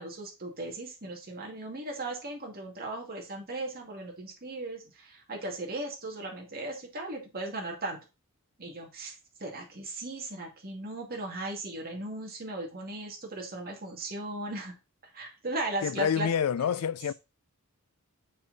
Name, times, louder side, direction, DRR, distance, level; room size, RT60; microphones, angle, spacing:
voice 1, 0.0-8.0 8.6-14.8 15.0-16.3, right 2 dB, 45° right, 2.3 m, -37 dB
voice 2, 15.8-17.1, left 7 dB, 85° left, 0.4 m, -27 dB
6.7 x 5.5 x 4.1 m
head